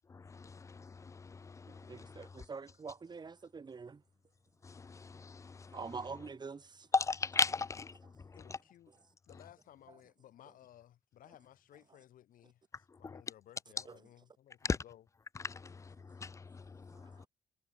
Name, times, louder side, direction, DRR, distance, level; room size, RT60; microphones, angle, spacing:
voice 1, 0.1-1.9 4.6-5.7 6.9-7.9 13.0-13.1 14.7-14.8 15.4-16.6 16.9-17.3, left 4 dB, 20° left, 0.5 m, -36 dB
voice 2, 1.7-4.0 5.7-6.9 8.2-8.3 8.9-9.0 13.9-14.0 16.2-16.3 16.9-17.3, right 5 dB, 30° right, 3.8 m, -46 dB
voice 3, 8.3-8.9 9.3-15.1, left 12 dB, 75° left, 4.5 m, -59 dB
cardioid pair, 120°, 14 cm